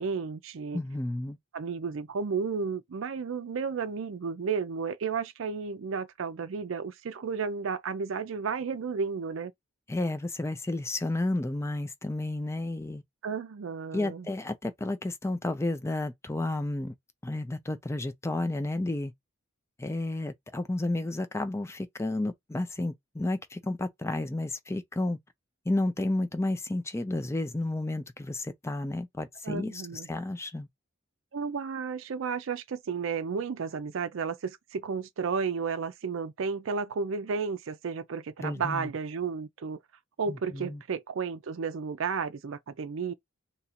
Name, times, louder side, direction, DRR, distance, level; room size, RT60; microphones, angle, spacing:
voice 1, 0.0-0.8 1.5-9.5 13.2-14.3 29.4-30.1 31.3-39.8 40.2-43.1, right 5 dB, 70° right, 0.4 m, -33 dB
voice 2, 0.7-1.4 9.9-13.0 13.9-16.9 17.2-19.1 19.8-25.2 25.7-30.7 38.4-38.9 40.3-40.8, left 2 dB, 15° left, 0.4 m, -31 dB
2.9 x 2.5 x 4.2 m
head